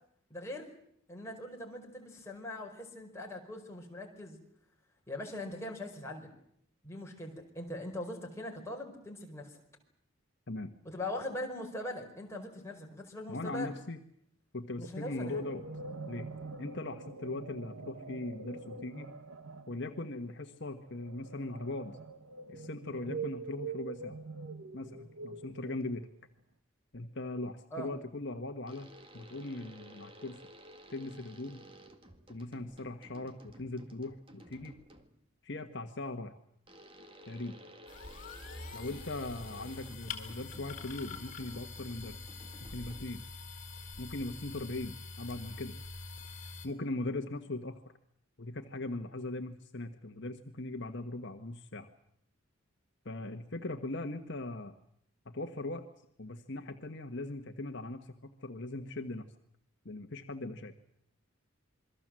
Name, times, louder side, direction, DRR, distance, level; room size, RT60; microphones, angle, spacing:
voice 1, 0.3-0.7 1.1-4.4 5.1-6.3 6.8-9.6 10.8-13.7 14.8-15.4 27.7-27.9, left 1 dB, 15° left, -1 dB, 5.0 m, -41 dB
voice 2, 13.3-14.0 14.5-15.6 16.1-16.3 16.6-19.1 19.7-22.0 22.5-24.2 24.7-26.1 26.9-30.4 30.9-31.6 32.3-34.8 35.4-36.4 37.3-37.6 38.7-42.3 42.6-43.2 44.0-45.8 46.6-47.9 48.4-51.9 53.0-54.7 55.2-55.8 56.2-59.2 59.8-60.7, left 2 dB, 55° left, 5 dB, 1.5 m, -40 dB
sound 1, 14.8-26.2, right 4 dB, 85° right, 1.6 m, -45 dB
sound 2, 28.7-35.3 36.7-43.3, right 1 dB, 25° right, 2.0 m, -55 dB
sound 3, 37.9-46.7, left 3 dB, 40° left, 4.2 m, -45 dB
27.5 x 22.5 x 7.7 m, 0.70 s
head